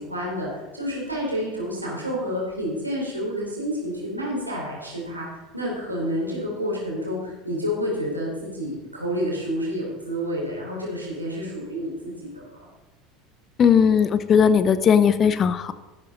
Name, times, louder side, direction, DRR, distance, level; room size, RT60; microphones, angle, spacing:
voice 1, 0.0-12.6, equal, 85° right, -4 dB, 3.9 m, -29 dB
voice 2, 13.6-15.7, left 7 dB, 35° left, 13 dB, 0.8 m, -18 dB
13.5 x 12.5 x 4.1 m, 1.1 s
figure-of-eight pair, 70°, 0 cm